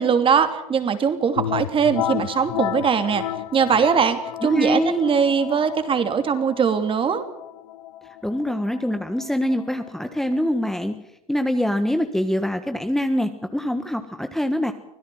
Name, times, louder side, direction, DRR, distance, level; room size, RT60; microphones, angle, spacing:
voice 1, 0.0-3.2 3.5-7.2, right 6 dB, 30° right, 9 dB, 2.8 m, -21 dB
sound 1, 1.3-10.9, left 12 dB, 75° left, 1.5 m, -33 dB
voice 2, 4.5-5.0 8.2-11.0 11.3-14.7, left 1 dB, ahead, 7 dB, 1.4 m, -24 dB
25.0 x 17.0 x 7.7 m, 0.86 s
hypercardioid pair, 95°, 18 cm